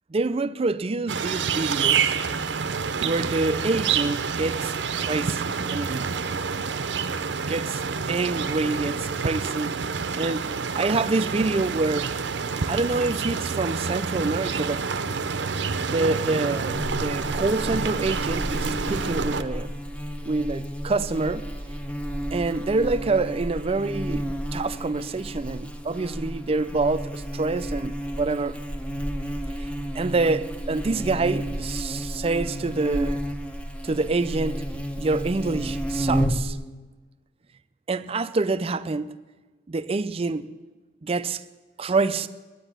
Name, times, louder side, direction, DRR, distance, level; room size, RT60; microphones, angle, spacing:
voice 1, 0.1-2.2 3.0-5.5 5.7-6.2 7.5-7.8 8.1-9.8 10.2-12.1 12.7-14.9 15.9-19.7 20.2-21.5 22.3-28.6 29.6-29.7 29.9-33.2 33.8-34.6 35.0-36.6 37.9-39.2 39.7-40.5 41.0-41.4 41.8-42.3, right 3 dB, 30° right, 0.4 m, -26 dB
sound 1, 1.1-19.4, right 5 dB, 75° right, 0.6 m, -28 dB
Buzz, 16.7-36.5, equal, 5° left, 0.8 m, -31 dB
10.0 x 9.9 x 9.9 m
head